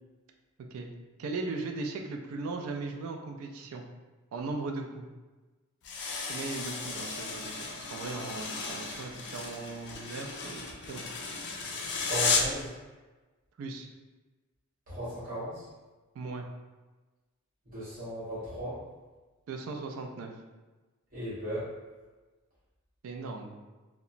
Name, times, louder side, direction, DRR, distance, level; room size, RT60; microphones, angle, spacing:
voice 1, 1.2-3.8 4.3-5.1 6.3-11.0 13.6-13.9 16.2-16.4 19.5-20.3 23.0-23.6, right 3 dB, 70° right, 3 dB, 0.3 m, -38 dB
sound 1, 5.8-12.6, left 4 dB, 50° left, 0.4 m, -34 dB
voice 2, 11.9-12.7 14.9-15.6 17.7-18.8 21.1-21.7, right 1 dB, 40° right, -12 dB, 0.9 m, -36 dB
2.8 x 2.1 x 2.5 m, 1.2 s
head